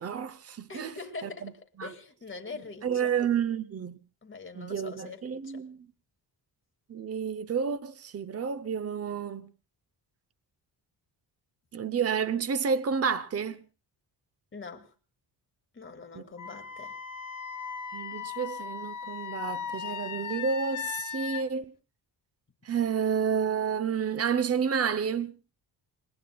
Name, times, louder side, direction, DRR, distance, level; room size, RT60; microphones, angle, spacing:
voice 1, 0.0-0.9 1.2-1.5 1.8-1.9 2.8-4.0 4.6-5.8 6.9-9.5 11.7-13.6 16.1-16.2 17.9-21.7 22.6-25.3, right 7 dB, 35° right, 0.8 m, -30 dB
voice 2, 0.7-3.1 4.2-5.7 14.5-14.9 15.7-17.0, left 4 dB, 25° left, 2.2 m, -43 dB
Wind instrument woodwind instrument, 16.4-21.4, left 8 dB, 45° left, 1.9 m, -37 dB
28.0 x 21.0 x 2.4 m
wide cardioid pair, 130°, 44 cm